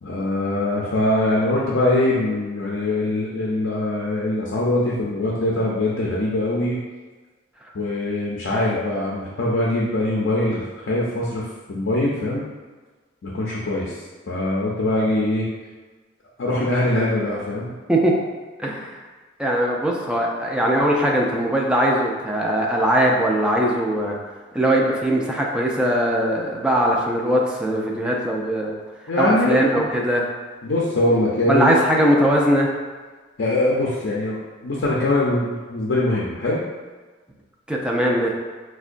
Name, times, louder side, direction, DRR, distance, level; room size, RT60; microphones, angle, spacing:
voice 1, 0.0-6.8 7.7-12.4 13.2-14.0 14.3-15.5 16.4-17.7 29.1-29.8 30.6-31.8 33.4-36.6, left 1 dB, 65° left, -5 dB, 0.5 m, -22 dB
voice 2, 18.6-19.0 19.4-24.2 24.5-28.7 29.2-30.3 31.5-32.7 37.7-38.3, right 1 dB, 5° right, -2 dB, 0.4 m, -20 dB
4.7 x 2.2 x 2.5 m, 1.4 s
head